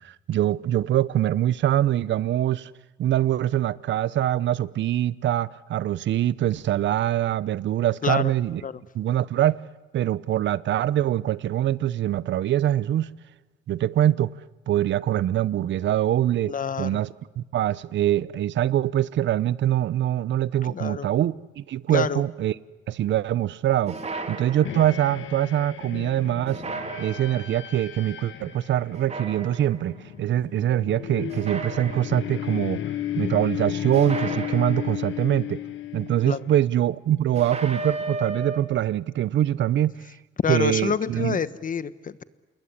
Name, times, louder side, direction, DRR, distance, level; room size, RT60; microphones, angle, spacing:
voice 1, 0.0-2.7 3.0-8.6 8.9-9.6 9.9-13.1 13.7-14.3 14.7-17.1 17.4-22.5 22.9-24.0 24.3-26.6 27.0-32.8 33.2-35.6 35.9-40.0 40.5-41.4, right 12 dB, 65° right, 0.8 m, -24 dB
voice 2, 8.0-8.3 8.6-8.8 16.5-17.0 20.6-21.1 21.9-22.2 36.3-36.4 40.4-42.2, left 7 dB, 45° left, 1.1 m, -27 dB
sound 1, 23.9-25.1 26.5-27.6 28.9-29.9 31.3-32.5 33.9-35.3 37.3-38.6, right 3 dB, 35° right, 3.0 m, -35 dB
sound 2, 24.6-36.7, left 12 dB, 75° left, 1.9 m, -34 dB
28.0 x 21.0 x 9.8 m
cardioid pair, 90°, 20 cm